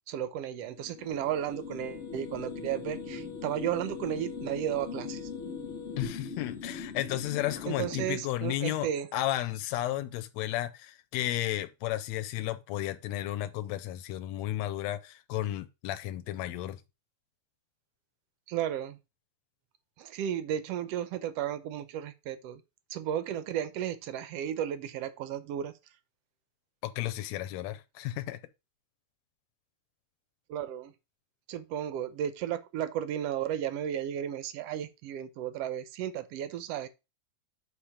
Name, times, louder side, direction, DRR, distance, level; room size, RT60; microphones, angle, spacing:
voice 1, 0.1-5.3 7.7-9.1 18.5-19.0 20.0-22.6 22.9-25.7 30.5-30.9 31.5-36.9, right 10 dB, 75° right, 1.5 m, -34 dB
sound 1, 0.6-8.2, left 5 dB, 50° left, 0.8 m, -40 dB
voice 2, 6.0-16.8 26.8-28.4, left 14 dB, 80° left, 1.9 m, -33 dB
7.2 x 4.5 x 4.9 m
omnidirectional pair, 3.3 m